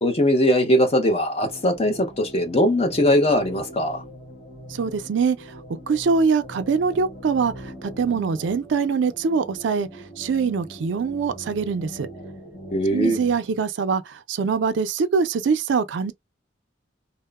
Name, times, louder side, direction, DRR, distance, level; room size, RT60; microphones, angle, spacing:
voice 1, 0.0-4.0 12.7-13.2, left 1 dB, 30° left, 0.6 m, -20 dB
sound 1, 1.4-13.4, equal, 60° left, 1.4 m, -41 dB
voice 2, 4.7-5.4 5.9-7.5 7.8-9.9 10.2-12.1 12.9-14.0 14.3-16.1, right 5 dB, 70° right, 0.4 m, -23 dB
2.8 x 2.0 x 2.2 m
head